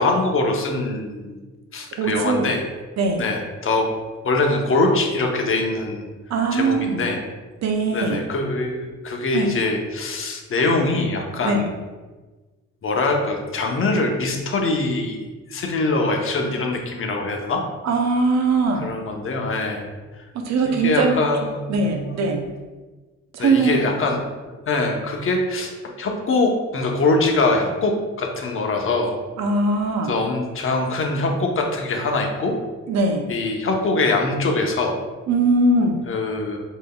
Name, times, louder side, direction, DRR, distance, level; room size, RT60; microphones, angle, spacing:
voice 1, 0.0-1.4 1.7-2.6 3.2-3.9 4.2-6.0 6.5-7.2 7.9-11.8 12.8-17.6 18.8-19.9 20.6-22.3 23.4-24.2 24.7-25.7 26.0-29.2 30.1-32.6 33.3-35.0 36.1-36.6, left 2 dB, 45° left, 2 dB, 0.8 m, -23 dB
voice 2, 2.0-2.5 3.0-3.2 6.3-7.0 7.6-8.2 9.3-9.6 11.4-11.6 17.8-18.9 20.3-21.2 21.7-22.4 23.3-23.8 29.4-30.1 32.9-33.3 35.3-36.0, right 3 dB, 60° right, 3 dB, 0.7 m, -20 dB
5.1 x 3.7 x 2.3 m, 1.3 s
cardioid pair, 90°, 30 cm